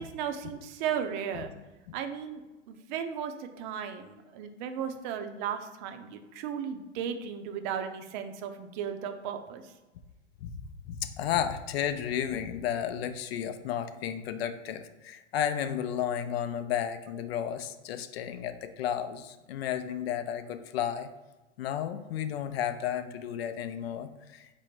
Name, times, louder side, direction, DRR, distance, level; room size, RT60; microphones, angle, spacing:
voice 1, 0.0-1.5 1.9-2.4 2.7-9.6, right 8 dB, 40° right, 7 dB, 0.6 m, -35 dB
voice 2, 10.4-21.1 21.6-24.5, left 9 dB, 60° left, 10 dB, 0.5 m, -33 dB
5.2 x 2.1 x 4.5 m, 1.1 s
hypercardioid pair, 105°, 36 cm